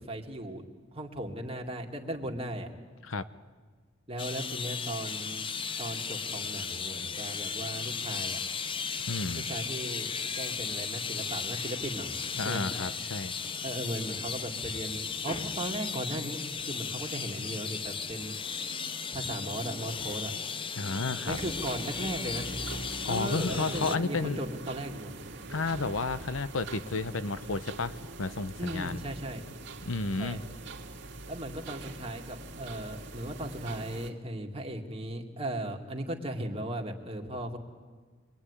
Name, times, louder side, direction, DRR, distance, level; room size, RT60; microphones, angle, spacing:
voice 1, 0.1-0.7 0.9-2.7 4.1-5.5 5.8-8.4 9.3-12.1 12.4-12.6 13.6-18.4 19.1-20.3 21.2-22.5 23.1-25.1 28.6-29.4 30.2-30.4 31.3-37.6, right 1 dB, 30° right, 2 dB, 2.5 m, -37 dB
sound 1, 4.2-24.0, left 6 dB, 25° left, 0.7 m, -36 dB
voice 2, 9.1-9.5 12.4-13.4 20.7-21.4 23.0-24.4 25.5-29.0 29.8-30.4, left 3 dB, 85° left, 13 dB, 0.9 m, -32 dB
sound 2, 21.3-34.1, right 2 dB, 60° right, 2.2 m, -43 dB
26.0 x 22.0 x 9.9 m, 1.5 s
head